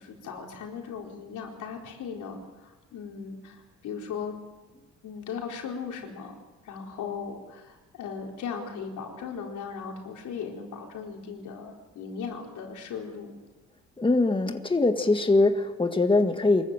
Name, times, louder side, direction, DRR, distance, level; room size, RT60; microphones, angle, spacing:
voice 1, 0.0-4.4 5.0-6.3 6.6-13.4, left 6 dB, 80° left, 1 dB, 4.4 m, -38 dB
voice 2, 14.0-16.6, left 2 dB, 15° left, 6 dB, 1.8 m, -22 dB
24.5 x 14.5 x 9.0 m, 1.2 s
cardioid pair, 90°, 30 cm